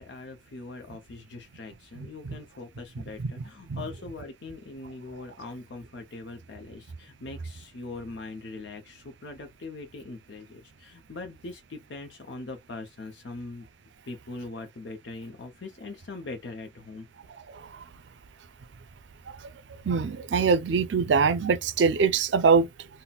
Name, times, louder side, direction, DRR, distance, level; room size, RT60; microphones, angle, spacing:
voice 1, 0.0-13.7 14.0-17.1, left 3 dB, 75° left, 0.6 m, -41 dB
voice 2, 1.9-2.4 3.2-3.8 17.4-17.8 19.3-19.5 19.8-22.9, right 5 dB, 80° right, 0.4 m, -24 dB
4.0 x 2.1 x 2.2 m
head